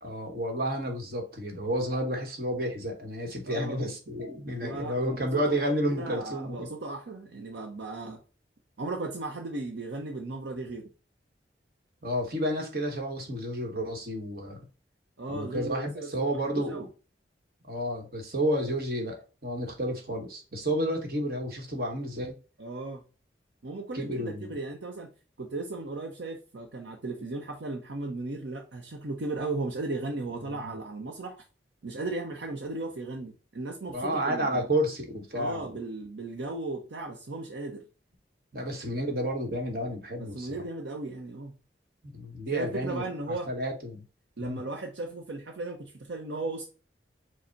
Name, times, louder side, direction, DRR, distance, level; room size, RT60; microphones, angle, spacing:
voice 1, 0.0-6.7 12.0-14.6 15.3-16.8 17.6-22.3 23.9-24.5 30.4-30.8 33.9-35.7 38.5-40.6 42.1-44.0 44.4-44.6, equal, 55° right, 1.1 m, -31 dB
voice 2, 3.5-3.8 4.6-5.6 5.9-8.2 8.8-10.9 15.2-16.9 22.6-23.0 23.6-25.1 25.4-31.4 31.8-34.6 35.3-37.9 40.2-41.6 42.5-43.5 44.4-46.7, right 2 dB, 75° right, 0.6 m, -36 dB
4.9 x 2.0 x 4.5 m
head